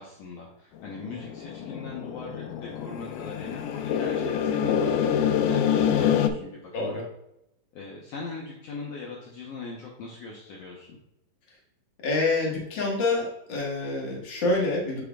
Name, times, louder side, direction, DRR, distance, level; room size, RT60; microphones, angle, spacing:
voice 1, 0.0-7.0 7.7-11.0, left 3 dB, 75° left, -3 dB, 1.5 m, -40 dB
sound 1, 0.8-6.3, left 8 dB, 90° left, 1.7 m, -26 dB
voice 2, 6.7-7.1 12.0-15.0, left 2 dB, 45° left, -2 dB, 1.6 m, -27 dB
7.6 x 6.1 x 2.3 m, 0.83 s
omnidirectional pair, 4.1 m